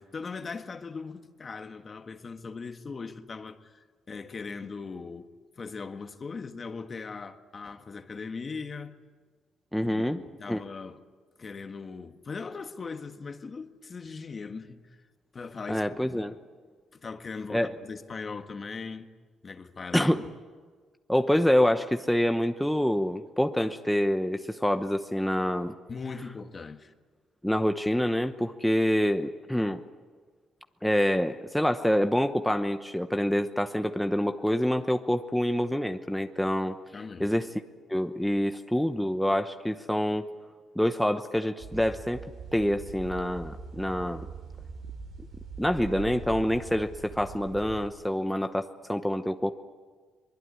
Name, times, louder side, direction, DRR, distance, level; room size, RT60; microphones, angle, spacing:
voice 1, 0.0-5.3 5.6-8.9 9.8-11.0 11.4-14.9 15.3-16.2 16.9-19.1 19.4-20.3 25.9-26.9 36.9-37.3, left 4 dB, 40° left, 1.6 m, -39 dB
voice 2, 9.7-10.2 10.5-10.6 15.7-16.3 17.5-17.7 19.9-20.2 21.1-25.7 27.4-29.8 30.8-36.8 37.2-37.5 37.9-40.3 40.7-42.2 42.5-44.3 45.6-49.5, equal, ahead, 1.0 m, -26 dB
sound 1, 41.6-47.9, right 5 dB, 70° right, 5.6 m, -42 dB
23.5 x 21.5 x 9.7 m
cardioid pair, 90°, 0 cm